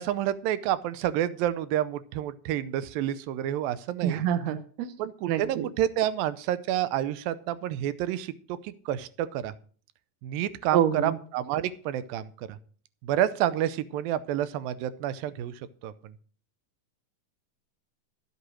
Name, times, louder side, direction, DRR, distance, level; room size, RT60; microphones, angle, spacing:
voice 1, 0.0-4.2 5.0-8.3 8.6-9.5 10.2-12.6 13.0-15.5 15.8-15.9, right 11 dB, 90° right, 15 dB, 2.5 m, -29 dB
voice 2, 4.0-4.9 5.3-5.7 10.7-11.2, right 10 dB, 70° right, 9 dB, 1.7 m, -26 dB
13.5 x 8.1 x 6.2 m, 0.43 s
omnidirectional pair, 4.0 m